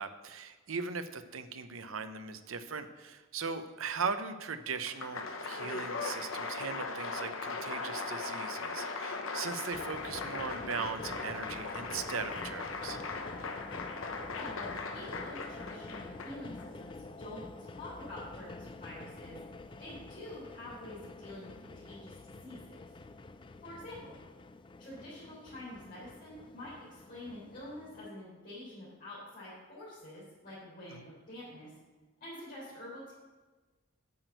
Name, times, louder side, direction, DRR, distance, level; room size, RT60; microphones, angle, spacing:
voice 1, 0.0-13.0 30.9-31.0, right 5 dB, 75° right, 10 dB, 0.8 m, -39 dB
Applause, 4.7-16.6, left 4 dB, 75° left, 1.0 m, -39 dB
sound 1, 9.7-28.1, left 3 dB, 25° left, 0.4 m, -48 dB
voice 2, 14.2-19.4 19.8-22.8 23.6-24.2 24.8-31.7 32.2-33.1, left 1 dB, 45° left, -10 dB, 3.9 m, -47 dB
8.7 x 6.2 x 7.9 m, 1.3 s
head